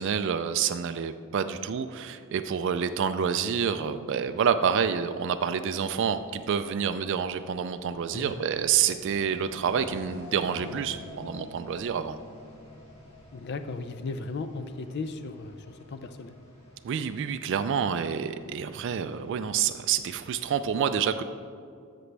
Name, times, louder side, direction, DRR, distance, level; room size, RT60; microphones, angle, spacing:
voice 1, 0.0-12.2 16.8-21.2, right 7 dB, 55° right, 9 dB, 0.3 m, -28 dB
sound 1, 4.0-20.5, left 1 dB, 30° left, 1.8 m, -50 dB
voice 2, 13.3-16.3, left 3 dB, 50° left, 10 dB, 0.4 m, -36 dB
13.0 x 6.0 x 3.3 m, 2.4 s
head